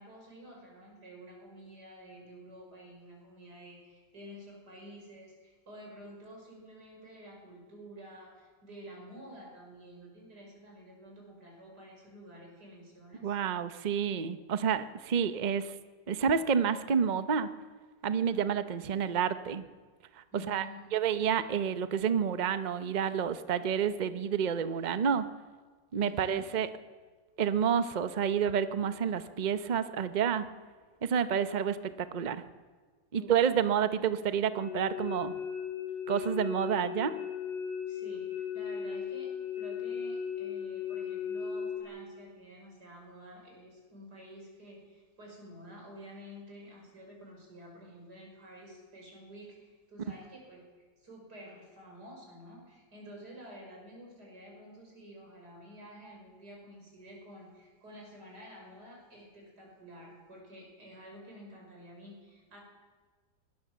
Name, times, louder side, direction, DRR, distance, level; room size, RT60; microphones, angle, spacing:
voice 1, 0.0-13.4 20.3-20.9 26.0-26.4 33.1-33.4 37.9-50.6 51.0-62.6, equal, 60° right, -1 dB, 6.7 m, -50 dB
voice 2, 13.2-15.7 16.1-17.5 18.0-19.6 20.2-20.7 20.9-25.2 25.9-26.7 27.4-30.5 31.0-32.4 33.1-35.4 36.1-37.1, right 7 dB, 40° right, 11 dB, 0.6 m, -29 dB
sound 1, 34.6-41.8, left 7 dB, 55° left, 8.4 m, -37 dB
21.0 x 19.5 x 7.5 m, 1.4 s
omnidirectional pair, 2.0 m